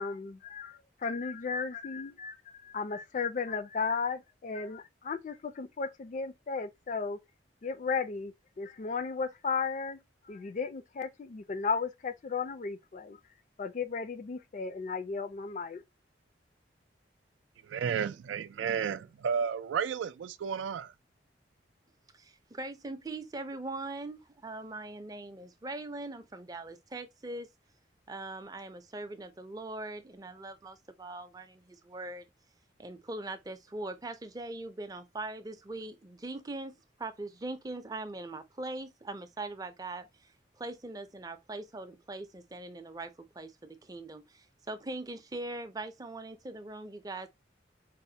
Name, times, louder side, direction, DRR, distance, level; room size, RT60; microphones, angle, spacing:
voice 1, 0.0-7.2 7.6-10.0 10.2-13.2 13.6-15.8, left 5 dB, 40° left, 0.3 m, -35 dB
voice 2, 17.6-20.9, right 7 dB, 85° right, 0.3 m, -32 dB
voice 3, 22.1-27.5 28.1-32.2 32.8-47.3, right 2 dB, 20° right, 0.4 m, -41 dB
4.1 x 2.1 x 2.7 m
head